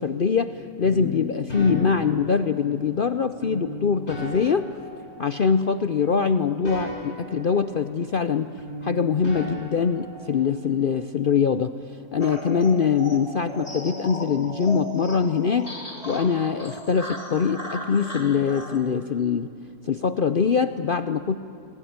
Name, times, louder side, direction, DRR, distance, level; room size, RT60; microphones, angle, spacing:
voice 1, 0.0-4.7 5.2-8.5 8.8-11.7 12.1-15.7 16.1-19.5 19.8-21.4, left 6 dB, 55° left, 11 dB, 0.5 m, -23 dB
sound 1, 0.8-2.8 3.4-5.7 6.0-8.3 8.6-10.6, left 1 dB, 40° left, 8.1 m, -36 dB
sound 2, 12.2-18.8, equal, 20° left, 2.8 m, -37 dB
26.5 x 19.0 x 9.5 m, 2.6 s
omnidirectional pair, 1.7 m